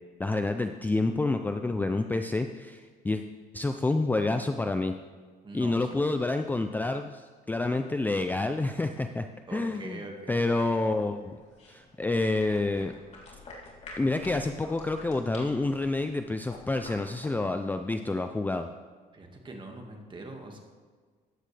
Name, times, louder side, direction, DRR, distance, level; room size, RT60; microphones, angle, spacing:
voice 1, 0.2-3.2 3.5-4.9 5.5-10.0 10.3-11.4 11.7-12.9 14.0-18.7, left 2 dB, 10° left, 7 dB, 0.4 m, -28 dB
voice 2, 5.4-6.0 9.5-10.4 19.1-20.6, right 2 dB, 30° right, 3 dB, 1.9 m, -43 dB
sound 1, 10.4-17.5, left 2 dB, 40° left, 3.4 m, -49 dB
14.0 x 9.7 x 3.4 m, 1.5 s
cardioid pair, 110°, 17 cm